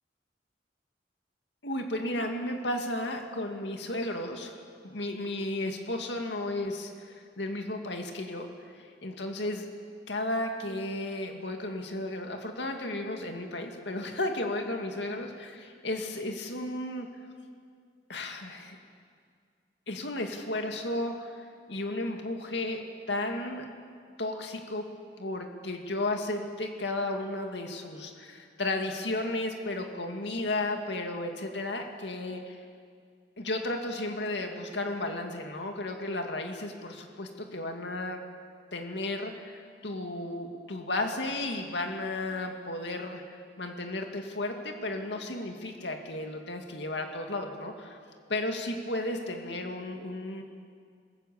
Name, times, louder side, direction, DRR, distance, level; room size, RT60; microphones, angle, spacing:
voice 1, 1.6-4.6 4.8-8.5 8.7-9.7 10.1-17.1 18.1-18.8 19.9-22.8 23.1-23.6 24.2-24.8 25.2-32.6 33.4-38.2 38.7-48.0 48.3-50.4, left 2 dB, 70° left, 3 dB, 2.3 m, -34 dB
26.5 x 21.5 x 7.2 m, 2.1 s
head